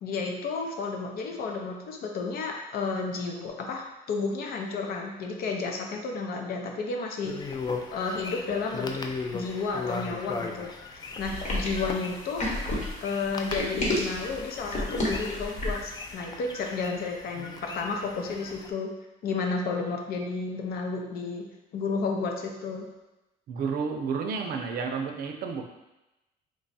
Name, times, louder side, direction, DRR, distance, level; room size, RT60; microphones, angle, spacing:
voice 1, 0.0-7.6 7.9-8.9 9.3-10.7 11.2-12.4 13.0-18.9 19.2-21.5 21.7-22.9, left 4 dB, 65° left, 2 dB, 0.6 m, -32 dB
sound 1, 7.2-18.7, left 4 dB, 25° left, 0.3 m, -38 dB
sound 2, 11.2-15.9, left 1 dB, 45° left, 1.0 m, -30 dB
voice 2, 17.3-17.8 23.5-25.7, right 5 dB, 60° right, 4 dB, 0.5 m, -32 dB
3.2 x 2.3 x 4.0 m, 0.99 s
cardioid pair, 110°, 17 cm